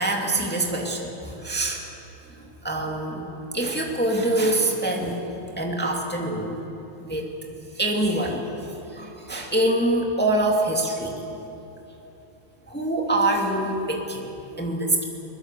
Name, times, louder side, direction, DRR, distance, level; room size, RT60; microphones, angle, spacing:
voice 1, 0.0-1.8 2.3-3.2 3.5-5.2 5.6-6.5 7.0-7.3 7.7-8.4 8.9-11.1 12.7-14.2 14.6-15.0, right 1 dB, 10° left, 0 dB, 0.5 m, -25 dB
23.5 x 21.5 x 7.4 m, 3.0 s
omnidirectional pair, 4.7 m